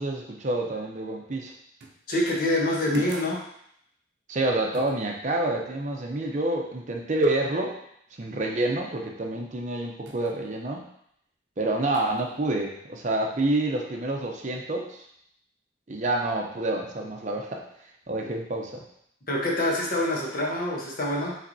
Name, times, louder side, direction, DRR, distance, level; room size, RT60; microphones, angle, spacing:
voice 1, 0.0-1.5 4.3-7.8 8.2-10.9 11.6-15.0 15.9-17.6 18.1-18.8, right 2 dB, 40° right, 1 dB, 0.6 m, -28 dB
sound 1, 1.8-2.1 2.9-3.4 4.7-5.0 10.1-10.3 11.9-12.2, right 1 dB, 80° right, 0.6 m, -37 dB
voice 2, 2.1-3.4 18.2-18.3 19.3-21.4, left 1 dB, 50° left, -2 dB, 1.0 m, -26 dB
5.7 x 3.3 x 2.7 m, 0.72 s
head